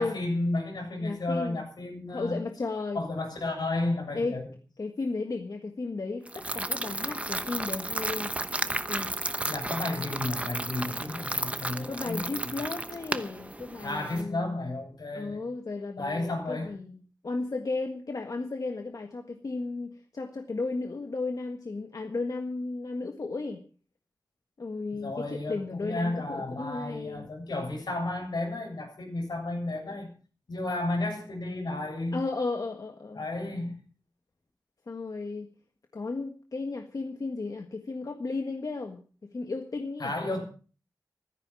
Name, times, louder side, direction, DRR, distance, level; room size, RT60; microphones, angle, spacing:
voice 1, 0.0-2.4 2.9-4.5 9.5-12.6 13.8-15.4 16.0-16.7 24.9-30.1 30.5-32.2 33.1-33.7 40.0-40.4, left 2 dB, 80° left, 7.5 m, -32 dB
voice 2, 1.0-1.6 2.1-3.0 4.1-4.4 4.8-8.3 8.9-9.1 11.9-14.5 15.1-23.6 24.6-27.3 32.1-33.2 34.9-35.5 35.9-40.2, left 3 dB, 55° left, 1.6 m, -34 dB
sound 1, 6.3-14.2, right 1 dB, 20° right, 1.0 m, -33 dB
15.5 x 14.0 x 5.8 m
wide cardioid pair, 105°, 7 cm